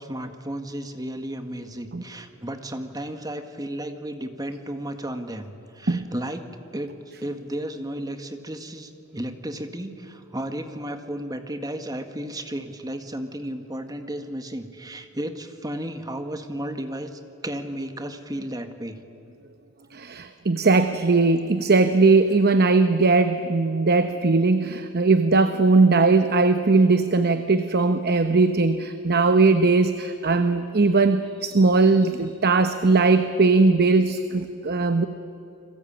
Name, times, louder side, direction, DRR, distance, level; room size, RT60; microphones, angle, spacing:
voice 1, 0.0-6.4 6.7-6.9 7.2-19.0, right 1 dB, 15° right, 7 dB, 1.7 m, -33 dB
voice 2, 19.9-35.1, right 3 dB, 45° right, 9 dB, 0.9 m, -19 dB
29.5 x 21.5 x 8.9 m, 2.7 s
head